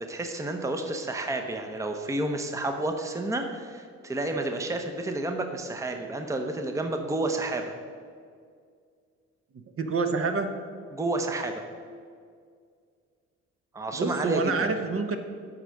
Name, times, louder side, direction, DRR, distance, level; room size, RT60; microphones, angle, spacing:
voice 1, 0.1-7.7 10.9-11.6 13.7-14.7, right 2 dB, 10° right, 5 dB, 0.7 m, -30 dB
voice 2, 9.8-10.5 13.9-15.2, right 4 dB, 45° right, 6 dB, 0.9 m, -27 dB
8.6 x 4.6 x 6.4 m, 2.1 s
cardioid pair, 90°, 30 cm